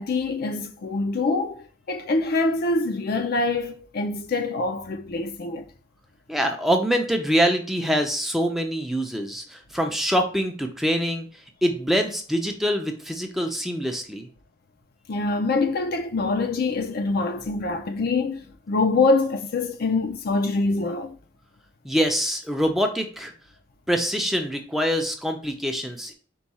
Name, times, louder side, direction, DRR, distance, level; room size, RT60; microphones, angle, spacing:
voice 1, 0.0-1.6 1.9-5.6 15.1-21.2, left 3 dB, 55° left, 0.5 m, -25 dB
voice 2, 6.3-11.3 11.6-14.3 21.8-23.3 23.9-26.1, equal, ahead, 0.5 m, -24 dB
4.6 x 2.3 x 4.1 m
head